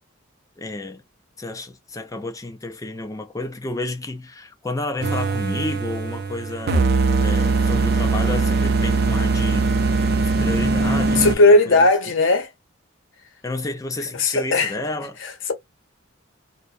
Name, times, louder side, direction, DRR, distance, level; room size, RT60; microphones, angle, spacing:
voice 1, 0.6-1.0 1.4-6.9 7.2-11.9 13.4-15.2, left 2 dB, 15° left, 0.4 m, -31 dB
sound 1, 5.0-11.4, right 3 dB, 50° right, 0.5 m, -21 dB
voice 2, 11.2-12.5 14.2-14.7 15.2-15.5, left 2 dB, 65° left, 0.8 m, -17 dB
2.5 x 2.1 x 2.4 m
head